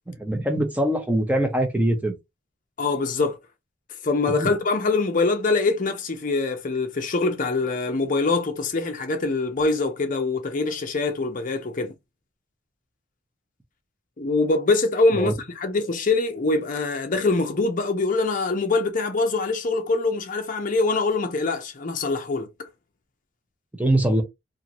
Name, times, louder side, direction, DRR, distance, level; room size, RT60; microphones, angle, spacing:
voice 1, 0.1-2.1 4.3-4.5 15.1-15.3 23.8-24.2, right 1 dB, 5° right, 0.6 m, -23 dB
voice 2, 2.8-3.4 4.0-11.9 14.2-22.7, left 3 dB, 40° left, 0.6 m, -24 dB
2.5 x 2.5 x 2.9 m
head